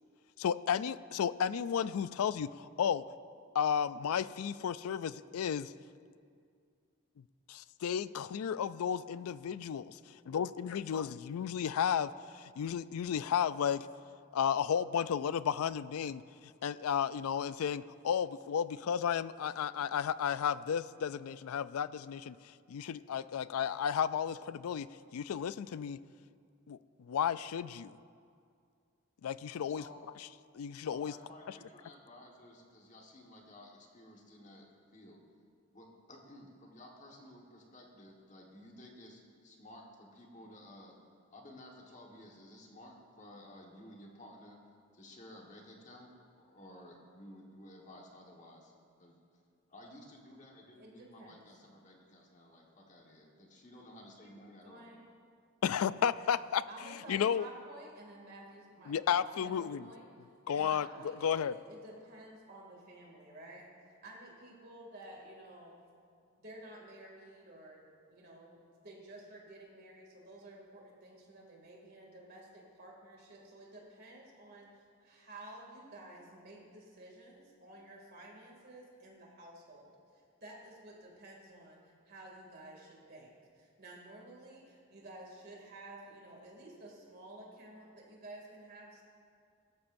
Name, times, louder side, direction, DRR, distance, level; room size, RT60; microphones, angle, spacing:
voice 1, 0.4-3.0 3.5-5.7 7.5-10.0 10.3-13.9 14.3-16.2 16.6-22.4 22.7-24.9 25.1-26.0 26.7-28.0 29.2-29.8 30.5-31.1 55.6-56.6 57.1-57.5 58.9-59.9 60.5-60.9 61.2-61.5, left 8 dB, 85° left, 16 dB, 0.3 m, -33 dB
voice 2, 29.6-30.0 30.8-35.2 35.7-40.9 41.3-44.6 44.9-46.1 46.4-48.7 49.0-49.2 49.7-54.9, left 1 dB, 35° left, -1 dB, 1.5 m, -54 dB
voice 3, 50.8-51.4 54.6-55.1 56.7-60.1 60.5-65.7 66.4-68.6 68.8-83.3 83.5-89.0, right 1 dB, 45° right, -2 dB, 2.5 m, -52 dB
17.5 x 14.0 x 2.6 m, 2.3 s
head